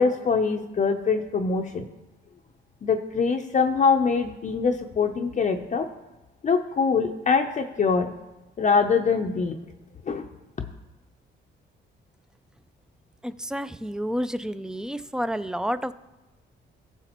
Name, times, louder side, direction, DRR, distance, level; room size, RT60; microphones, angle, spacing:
voice 1, 0.0-1.9 2.8-5.9 6.4-8.1 8.6-9.5 10.1-10.3, left 5 dB, 35° left, 4 dB, 0.6 m, -23 dB
voice 2, 13.2-15.9, equal, 5° right, 13 dB, 0.4 m, -30 dB
15.5 x 7.0 x 3.0 m, 1.1 s
cardioid pair, 90°, 20 cm